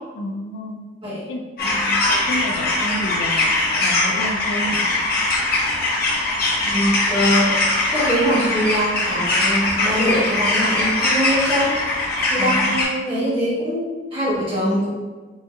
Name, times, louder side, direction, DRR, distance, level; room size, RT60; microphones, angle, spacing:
voice 1, 0.1-0.8 1.3-1.7 2.1-3.5 3.8-4.9 12.4-12.8, left 1 dB, 75° left, 4 dB, 0.4 m, -29 dB
sound 1, 1.6-12.8, left 2 dB, 55° left, 0.8 m, -21 dB
voice 2, 6.6-7.5 7.9-11.8 12.3-14.9, equal, 30° right, -10 dB, 1.5 m, -22 dB
4.1 x 2.7 x 2.2 m, 1.3 s
head